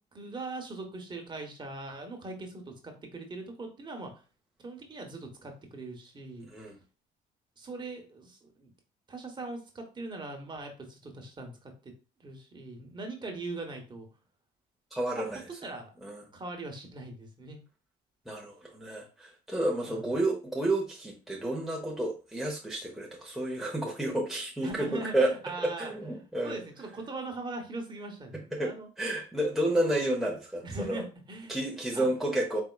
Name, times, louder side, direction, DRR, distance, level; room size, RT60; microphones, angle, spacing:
voice 1, 0.1-4.1 4.6-6.5 7.6-8.7 9.1-11.9 12.2-14.1 15.1-15.3 15.6-15.9 16.3-17.6 19.9-20.0 24.6-28.9 30.6-31.5 31.9-32.1, right 2 dB, 25° right, 3 dB, 1.1 m, -41 dB
voice 2, 6.4-6.7 14.9-15.4 16.0-16.2 18.3-25.3 25.6-26.6 28.5-31.0 31.5-32.6, right 1 dB, ahead, -2 dB, 0.8 m, -31 dB
4.4 x 3.4 x 2.3 m, 0.33 s
cardioid pair, 110°, 17 cm